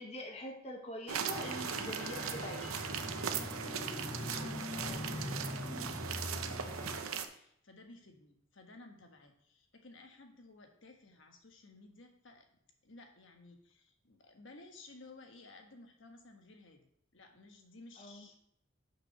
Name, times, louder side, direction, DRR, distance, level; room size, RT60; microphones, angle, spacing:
voice 1, 0.0-2.7 4.7-5.0 18.0-18.3, left 1 dB, 30° left, 2 dB, 1.1 m, -44 dB
sound 1, 1.1-7.3, right 7 dB, 85° right, 0.7 m, -39 dB
sound 2, 1.3-7.0, left 1 dB, 15° left, 0.4 m, -42 dB
voice 2, 3.2-12.5 12.8-16.9 17.1-18.4, left 2 dB, 60° left, 4 dB, 1.2 m, -56 dB
6.2 x 5.7 x 5.9 m, 0.70 s
head